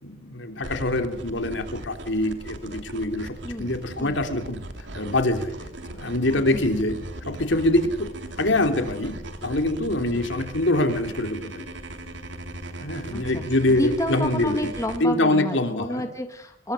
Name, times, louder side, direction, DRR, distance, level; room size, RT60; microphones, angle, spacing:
voice 1, 0.0-4.6 4.9-5.5 5.9-7.0 7.2-8.1 8.4-11.6 12.8-14.7 15.0-16.1, left 1 dB, 60° left, 6 dB, 3.1 m, -24 dB
sound 1, 0.6-15.0, right 1 dB, 60° right, 2.9 m, -38 dB
voice 2, 3.4-4.2 6.5-6.7 10.1-10.3 13.1-13.4 13.7-16.7, equal, 15° left, 5 dB, 1.8 m, -30 dB
26.0 x 21.5 x 6.4 m, 0.79 s
head